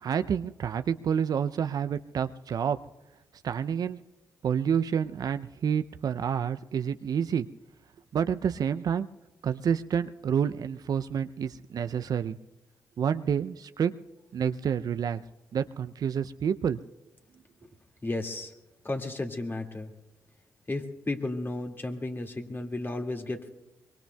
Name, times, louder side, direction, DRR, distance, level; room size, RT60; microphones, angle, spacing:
voice 1, 0.0-2.8 3.4-4.0 4.4-7.5 8.1-9.1 9.4-12.4 13.0-13.9 14.3-15.2 15.5-16.8, right 8 dB, 60° right, 11 dB, 0.5 m, -28 dB
voice 2, 18.0-18.5 18.8-19.9 20.7-23.5, left 2 dB, 30° left, 3 dB, 2.2 m, -33 dB
24.0 x 23.0 x 2.3 m, 1.0 s
hypercardioid pair, 40°, 7 cm